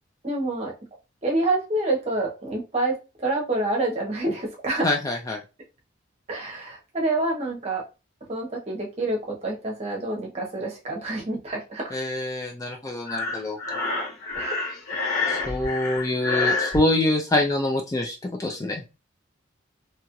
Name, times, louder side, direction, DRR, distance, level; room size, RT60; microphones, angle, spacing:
voice 1, 0.2-0.7 1.2-4.9 6.3-7.8 8.3-11.9 14.3-14.6 14.9-15.0, right 2 dB, 30° right, -1 dB, 0.8 m, -27 dB
voice 2, 4.8-5.4 11.9-13.6 15.3-18.8, left 2 dB, 15° left, 2 dB, 0.3 m, -25 dB
Breathing, 13.1-16.8, left 3 dB, 50° left, 1.0 m, -27 dB
2.8 x 2.4 x 2.9 m, 0.29 s
head